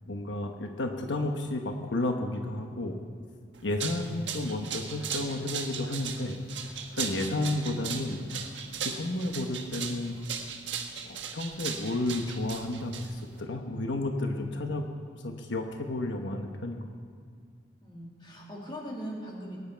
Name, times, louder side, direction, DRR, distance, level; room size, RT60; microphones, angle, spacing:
voice 1, 0.1-2.9 3.6-6.4 7.0-8.2 8.8-10.2 11.0-14.9 15.1-16.9, left 2 dB, 85° left, 4 dB, 1.1 m, -32 dB
sound 1, 3.6-13.4, right 7 dB, 85° right, 1.3 m, -37 dB
voice 2, 17.8-19.6, equal, 25° left, -3 dB, 2.7 m, -40 dB
22.5 x 9.6 x 4.6 m, 2.2 s
head